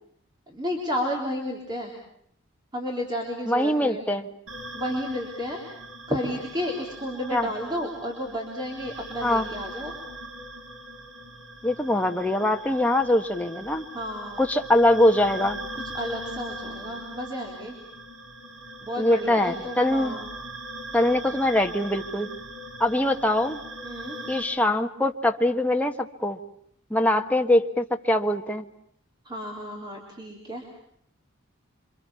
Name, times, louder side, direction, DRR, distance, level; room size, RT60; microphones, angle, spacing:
voice 1, 0.5-1.9 2.7-4.1 4.7-5.6 6.1-9.9 13.9-14.5 15.7-17.8 18.8-20.3 23.8-24.2 29.2-30.7, equal, 20° right, 0 dB, 3.7 m, -32 dB
voice 2, 3.5-4.3 7.3-7.5 9.2-9.5 11.6-13.8 14.4-15.6 19.0-20.2 20.9-22.3 22.8-23.6 24.3-26.4 26.9-28.6, left 1 dB, 5° left, 4 dB, 1.3 m, -23 dB
sound 1, 4.5-24.4, right 1 dB, 65° right, 4.1 m, -40 dB
28.0 x 26.0 x 7.0 m, 0.69 s
head